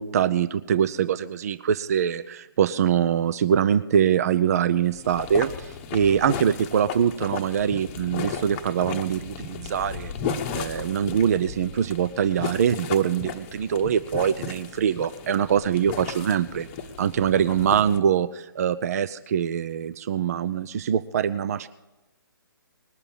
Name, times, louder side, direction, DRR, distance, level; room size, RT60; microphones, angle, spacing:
voice 1, 0.0-10.1 10.5-16.7 17.0-21.7, right 8 dB, 45° right, 13 dB, 0.5 m, -23 dB
sound 1, 4.8-18.0, left 6 dB, 25° left, 0.9 m, -35 dB
20.0 x 6.8 x 7.2 m, 1.1 s
figure-of-eight pair, 135°, 12 cm